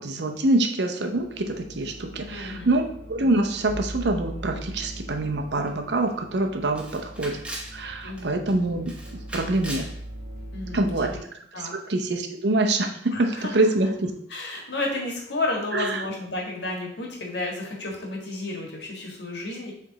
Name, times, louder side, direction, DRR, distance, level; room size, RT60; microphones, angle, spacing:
voice 1, 0.0-7.4 7.7-9.9 10.7-11.1 11.6-14.1 15.7-16.0, right 2 dB, 70° right, 5 dB, 0.8 m, -25 dB
sound 1, 1.1-11.2, right 1 dB, 50° right, 1.4 m, -40 dB
voice 2, 2.2-2.7 8.0-8.4 10.5-11.2 11.5-11.7 13.1-13.6 14.3-19.7, left 2 dB, 75° left, 0 dB, 1.6 m, -32 dB
Camera, 5.7-5.8 6.1-6.2 6.7-7.8 8.2-8.5 8.8-9.9, right 1 dB, 5° right, 0.9 m, -38 dB
7.6 x 3.5 x 4.0 m, 0.69 s
head